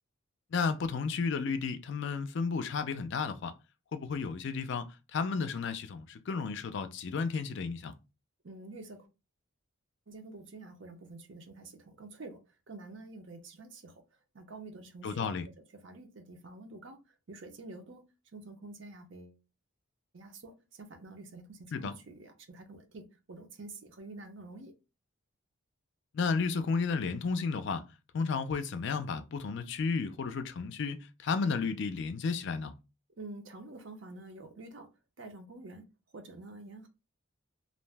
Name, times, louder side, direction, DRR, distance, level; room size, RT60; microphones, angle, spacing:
voice 1, 0.5-3.5 3.9-7.9 15.0-15.4 21.7-21.9 26.1-27.9 28.1-32.7, left 5 dB, 55° left, 0.4 m, -33 dB
voice 2, 8.4-9.1 10.1-14.0 14.3-15.4 15.8-18.0 18.3-19.4 20.1-24.7 33.2-34.9 35.2-35.9 36.1-36.9, right 2 dB, 60° right, 0.6 m, -48 dB
2.5 x 2.1 x 3.3 m
head